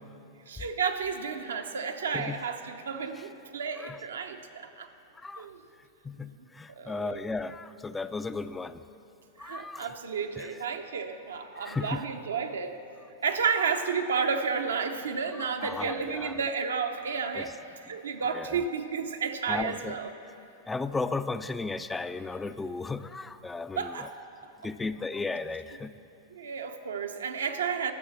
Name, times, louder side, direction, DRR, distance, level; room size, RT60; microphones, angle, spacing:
voice 1, 0.5-4.9 5.4-5.6 6.3-6.4 6.7-7.3 9.4-12.8 13.2-17.6 17.8-20.1 23.8-24.1 24.4-24.7 26.3-27.9, right 6 dB, 85° right, 5 dB, 0.8 m, -32 dB
voice 2, 6.0-8.8 9.4-9.9 10.4-10.5 11.6-12.0 15.6-16.4 17.4-17.5 18.3-18.5 19.5-20.0 20.7-24.1 24.6-25.9, left 3 dB, 10° left, 12 dB, 0.3 m, -35 dB
12.0 x 6.2 x 7.2 m, 2.8 s
hypercardioid pair, 110°, 0 cm